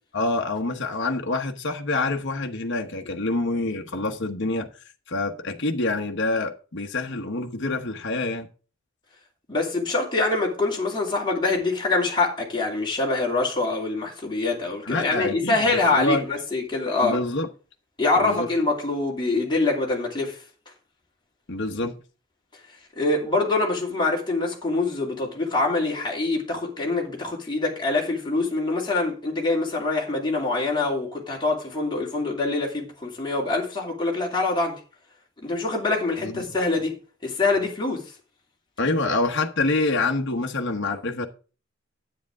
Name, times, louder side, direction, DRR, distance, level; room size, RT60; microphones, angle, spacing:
voice 1, 0.1-4.7 5.1-8.5 14.9-16.2 17.0-17.5 18.2-18.5 21.5-21.9 36.2-36.5 38.8-41.3, left 2 dB, 60° left, 1.1 m, -26 dB
voice 2, 9.5-17.2 18.0-20.4 23.0-34.8 35.4-36.9 37.2-38.0, left 3 dB, 25° left, 2.6 m, -24 dB
10.0 x 8.7 x 3.6 m
head